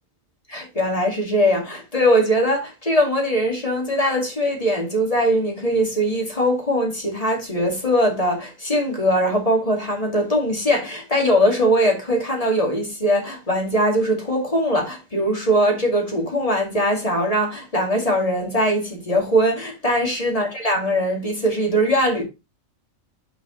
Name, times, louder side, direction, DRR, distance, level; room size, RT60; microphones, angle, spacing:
voice 1, 0.5-22.2, equal, 25° left, 2.5 m, -21 dB
6.0 x 5.7 x 3.9 m
omnidirectional pair, 1.4 m